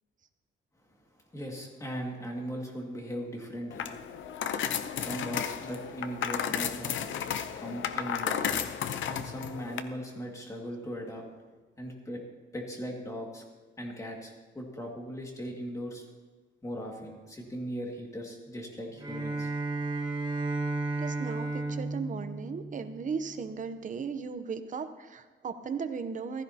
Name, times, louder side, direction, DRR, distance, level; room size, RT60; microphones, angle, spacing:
voice 1, 1.3-3.9 5.0-7.0 7.6-8.5 9.0-11.3 11.8-12.2 12.5-13.4 13.8-16.0 16.6-19.5, equal, 15° left, 0 dB, 2.0 m, -38 dB
sound 1, 3.7-9.8, left 8 dB, 70° left, 0.7 m, -33 dB
Bowed string instrument, 19.0-23.4, right 2 dB, 20° right, 1.7 m, -33 dB
voice 2, 21.0-26.4, right 5 dB, 40° right, 9 dB, 0.8 m, -36 dB
15.0 x 14.5 x 2.8 m, 1.3 s
cardioid pair, 150°, 21 cm